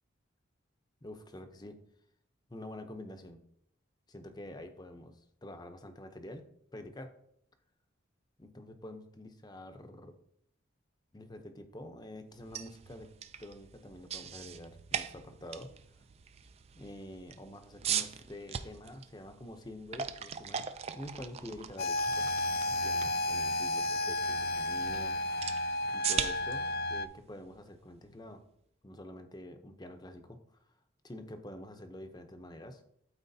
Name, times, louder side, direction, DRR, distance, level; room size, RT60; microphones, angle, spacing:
voice 1, 1.0-1.8 2.5-3.4 4.1-6.4 6.7-7.2 8.4-10.2 11.1-13.1 13.4-15.7 16.8-20.6 21.0-22.3 22.8-25.5 25.9-26.6 26.9-28.4 28.8-30.4 31.0-32.8, left 1 dB, 20° left, 7 dB, 0.7 m, -47 dB
sound 1, 12.3-28.3, right 8 dB, 30° right, 0.3 m, -41 dB
sound 2, 21.8-27.1, left 1 dB, 50° left, 0.3 m, -32 dB
12.5 x 4.3 x 2.7 m, 0.72 s
head